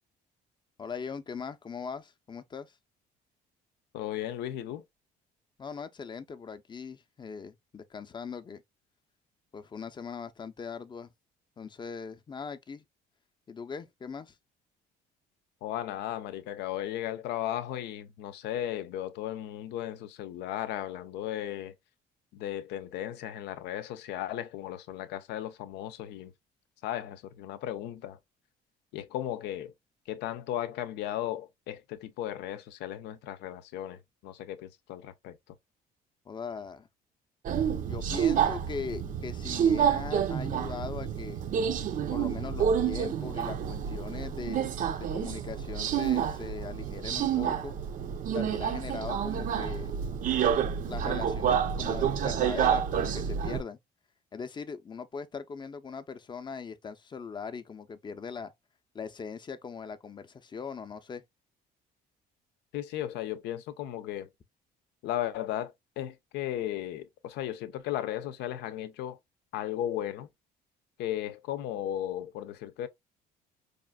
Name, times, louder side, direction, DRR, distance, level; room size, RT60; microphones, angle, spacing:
voice 1, 0.8-2.7 5.6-8.6 9.5-11.1 11.6-12.8 13.5-14.3 36.3-36.9 37.9-41.4 42.1-44.7 45.0-47.8 48.3-50.0 50.9-53.8 54.3-58.5 58.9-61.2, left 5 dB, 25° left, 0.6 m, -40 dB
voice 2, 3.9-4.8 15.6-21.7 22.3-26.3 26.8-28.2 28.9-29.7 30.1-35.6 62.7-64.3 65.0-69.2 69.5-70.3 71.0-72.9, left 12 dB, 85° left, 0.6 m, -35 dB
Subway metro underground, 37.5-53.6, right 8 dB, 50° right, 0.5 m, -29 dB
4.9 x 2.5 x 2.2 m
cardioid pair, 110°, 17 cm